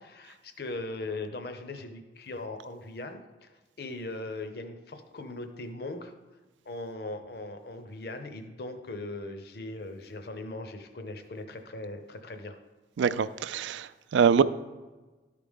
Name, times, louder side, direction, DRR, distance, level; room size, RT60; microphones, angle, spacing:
voice 1, 0.0-3.5 3.8-6.1 6.7-12.6, left 2 dB, 55° left, 0.7 m, -39 dB
voice 2, 13.0-14.4, right 7 dB, 75° right, 0.3 m, -24 dB
12.5 x 5.0 x 3.5 m
head